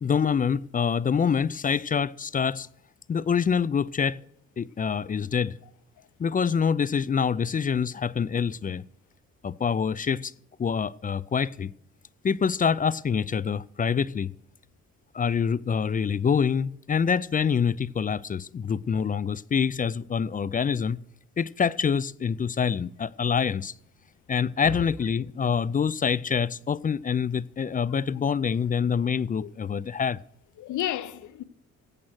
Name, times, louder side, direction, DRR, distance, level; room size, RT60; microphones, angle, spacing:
voice 1, 0.0-2.7 3.1-4.2 4.6-5.6 6.2-8.8 9.4-10.3 10.6-11.7 12.2-14.3 15.1-21.0 21.4-23.7 24.3-30.2, left 6 dB, 30° left, 0.4 m, -26 dB
voice 2, 30.6-31.4, left 12 dB, 75° left, 1.0 m, -32 dB
15.5 x 8.5 x 6.3 m
cardioid pair, 90°, 30 cm